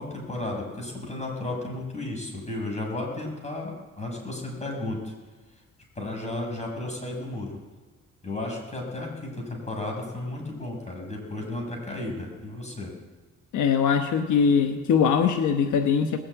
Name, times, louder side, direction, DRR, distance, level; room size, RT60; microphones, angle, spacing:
voice 1, 0.0-5.1 5.9-7.6 8.2-12.9, left 2 dB, 20° left, 1 dB, 6.3 m, -33 dB
voice 2, 13.5-16.2, left 6 dB, 75° left, 6 dB, 1.1 m, -22 dB
19.5 x 7.6 x 8.9 m, 1.3 s
cardioid pair, 90°, 30 cm